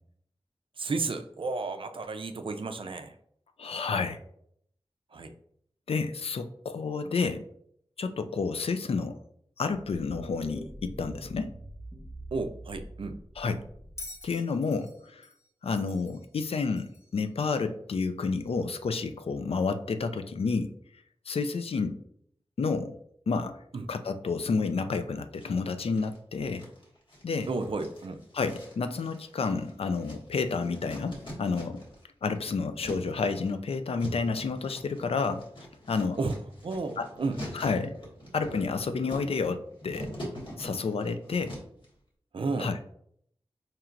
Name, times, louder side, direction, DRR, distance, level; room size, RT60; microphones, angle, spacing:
voice 1, 0.8-3.2 5.1-5.3 7.2-7.3 12.3-13.2 23.7-23.9 27.5-28.2 36.2-36.4 36.6-37.4 42.3-42.7, right 3 dB, 55° right, 8 dB, 0.4 m, -32 dB
voice 2, 3.6-4.2 5.9-7.4 8.0-9.2 9.6-11.5 13.4-13.6 14.2-15.3 15.6-20.7 21.3-22.0 22.6-22.9 23.3-23.6 23.9-26.6 27.2-27.5 28.3-31.8 32.2-35.4 35.9-36.2 37.0-37.1 37.5-38.0 38.3-40.1 40.6-41.6 42.6-42.8, left 4 dB, 70° left, 9 dB, 0.3 m, -30 dB
sound 1, 9.7-14.4, right 1 dB, 15° right, 0.7 m, -45 dB
Bell, 14.0-17.2 18.3-18.4, left 2 dB, 25° left, 0.7 m, -47 dB
sound 2, 25.4-26.2 26.5-32.0 32.3-41.9, equal, 55° left, 1.2 m, -44 dB
4.4 x 2.9 x 2.5 m, 0.68 s
wide cardioid pair, 70°, 10 cm